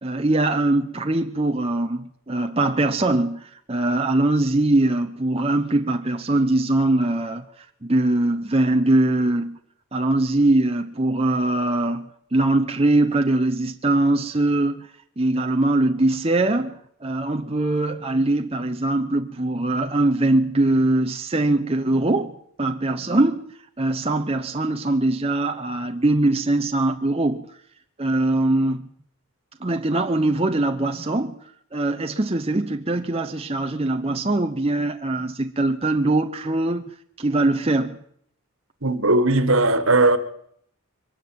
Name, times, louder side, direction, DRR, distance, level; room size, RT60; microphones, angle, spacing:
voice 1, 0.0-9.6 9.9-14.9 15.2-23.4 23.8-27.5 28.0-28.9 29.6-31.4 31.7-36.8 37.2-38.0, right 2 dB, 25° right, 0.8 m, -22 dB
voice 2, 38.8-40.2, right 2 dB, 65° right, 1.7 m, -18 dB
23.5 x 13.0 x 9.3 m
head